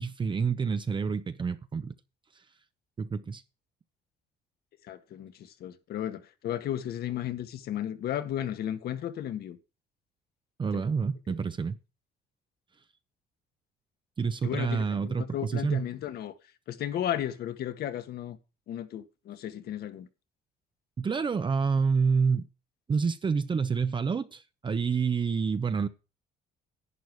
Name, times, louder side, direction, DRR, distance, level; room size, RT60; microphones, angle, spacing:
voice 1, 0.0-1.9 3.0-3.4 10.6-11.8 14.2-15.9 21.0-22.5 22.9-25.9, right 5 dB, 30° right, 0.9 m, -28 dB
voice 2, 4.9-9.6 10.7-10.8 14.4-16.3 16.7-18.4 18.7-20.1, left 11 dB, 65° left, 1.8 m, -34 dB
11.0 x 9.1 x 4.7 m
cardioid pair, 110°, 17 cm